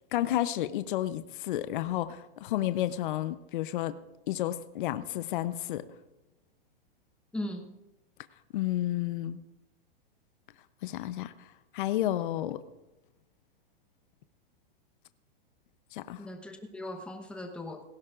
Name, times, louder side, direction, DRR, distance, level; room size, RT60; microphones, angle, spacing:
voice 1, 0.1-4.0 4.3-5.9 8.5-9.4 10.8-11.3 11.7-12.6 15.9-16.3, left 13 dB, 60° left, 12 dB, 0.7 m, -31 dB
voice 2, 7.3-7.7 16.2-17.8, left 1 dB, 5° left, 4 dB, 1.0 m, -38 dB
18.5 x 15.5 x 2.5 m, 1.0 s
hypercardioid pair, 150°, 29 cm